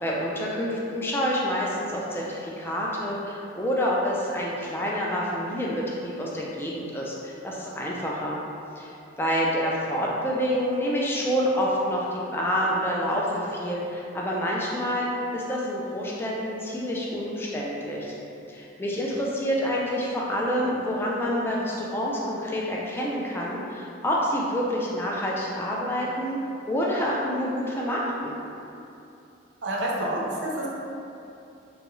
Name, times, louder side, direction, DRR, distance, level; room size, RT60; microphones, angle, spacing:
voice 1, 0.0-8.4 8.8-18.1 18.5-26.4 26.7-28.3, equal, 10° left, -4 dB, 0.3 m, -28 dB
voice 2, 29.6-30.7, right 1 dB, 75° right, -4 dB, 0.5 m, -28 dB
3.0 x 2.3 x 3.0 m, 2.7 s
head